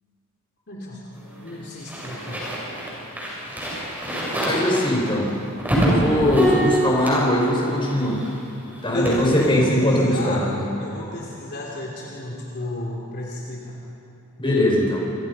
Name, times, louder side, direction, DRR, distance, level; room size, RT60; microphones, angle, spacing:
voice 1, 0.7-1.0 1.3-2.5 6.1-6.5 8.9-10.5 10.8-13.8, left 2 dB, 50° left, -3 dB, 3.3 m, -33 dB
sound 1, 1.1-8.5 8.7-9.5, right 1 dB, 10° right, 7.8 m, -26 dB
voice 2, 4.5-5.3 5.8-8.2 8.8-10.6 14.4-15.0, left 1 dB, 25° left, -2 dB, 5.5 m, -20 dB
29.0 x 26.0 x 5.6 m, 2.9 s
head